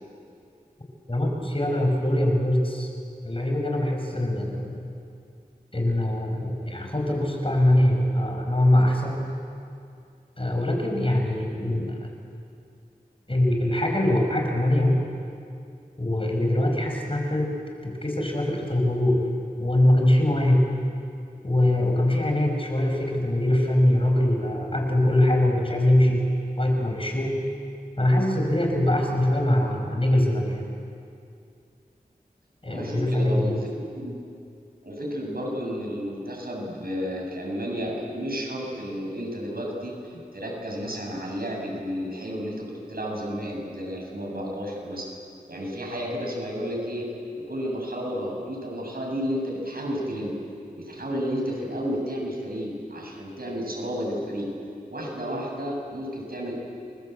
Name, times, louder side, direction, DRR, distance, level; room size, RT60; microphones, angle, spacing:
voice 1, 1.1-2.9 3.2-4.9 5.7-9.3 10.4-12.1 13.3-15.0 16.0-17.5 17.8-19.2 19.6-20.6 21.4-26.3 26.6-27.4 28.0-30.7 32.6-33.6, left 1 dB, 35° left, 1 dB, 6.5 m, -23 dB
voice 2, 32.7-33.7 34.0-34.1 34.8-42.5 42.9-45.1 45.5-50.3 50.8-54.5 54.9-56.5, equal, 70° right, -1 dB, 7.9 m, -32 dB
29.0 x 23.5 x 8.2 m, 2.4 s
wide cardioid pair, 45°, 16 cm